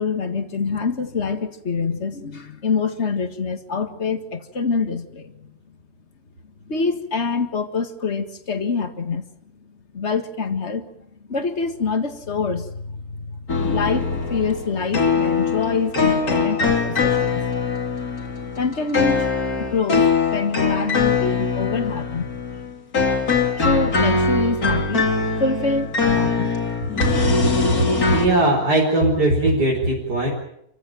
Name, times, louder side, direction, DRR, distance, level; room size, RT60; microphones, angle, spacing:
voice 1, 0.0-5.5 6.7-9.2 9.9-10.9 11.3-17.5 18.5-22.4 23.6-25.1 25.3-26.5, left 4 dB, 45° left, 8 dB, 2.1 m, -25 dB
sound 1, 13.5-28.3, left 4 dB, 65° left, 3.3 m, -22 dB
voice 2, 28.0-30.3, right 1 dB, 85° right, -3 dB, 5.7 m, -19 dB
28.0 x 15.5 x 9.1 m, 0.74 s
omnidirectional pair, 1.7 m